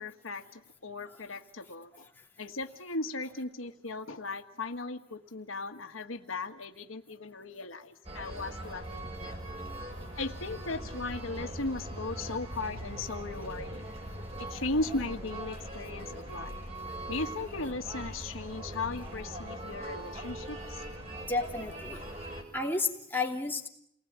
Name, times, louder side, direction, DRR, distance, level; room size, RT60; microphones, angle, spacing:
voice 1, 0.0-2.1 2.4-9.4 10.2-13.9 14.4-16.5 17.1-20.8, left 3 dB, 90° left, 6 dB, 1.6 m, -37 dB
sound 1, 8.0-22.4, right 1 dB, 30° right, 6.2 m, -41 dB
voice 2, 21.3-22.0 22.5-23.7, left 3 dB, 10° left, 1 dB, 2.9 m, -32 dB
29.5 x 20.0 x 9.5 m, 0.77 s
head